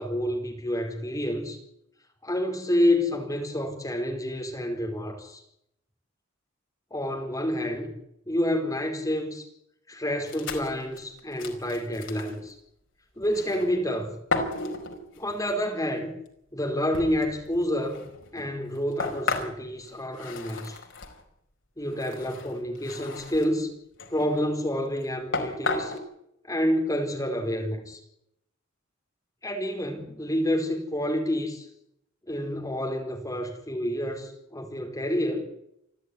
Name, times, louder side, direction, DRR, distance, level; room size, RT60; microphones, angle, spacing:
voice 1, 0.0-1.6 2.2-5.4 6.9-7.9 8.3-9.5 9.9-12.5 13.2-14.2 15.2-16.1 16.5-18.0 18.3-20.8 21.8-23.7 24.1-25.9 26.4-28.0 29.4-31.7 32.3-35.5, equal, 15° left, 2 dB, 4.6 m, -28 dB
sound 1, 10.3-12.4 13.2-13.9 14.3-15.5 16.3-16.4 16.9-21.2 21.9-23.5 23.9-24.5 25.0-25.1 25.3-26.0, left 3 dB, 65° left, 4.8 m, -34 dB
29.0 x 12.5 x 9.9 m, 0.79 s
head